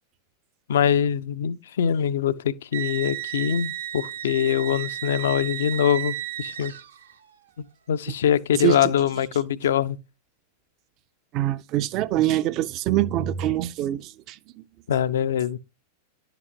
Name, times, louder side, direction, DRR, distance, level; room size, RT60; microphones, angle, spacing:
voice 1, 0.7-6.7 7.6-10.0 14.9-15.6, left 9 dB, 60° left, 0.4 m, -23 dB
sound 1, 2.7-7.2, right 12 dB, 70° right, 0.7 m, -33 dB
voice 2, 8.5-8.9 11.3-14.4, right 13 dB, 40° right, 0.4 m, -24 dB
10.5 x 5.9 x 2.8 m
figure-of-eight pair, 90°, 0 cm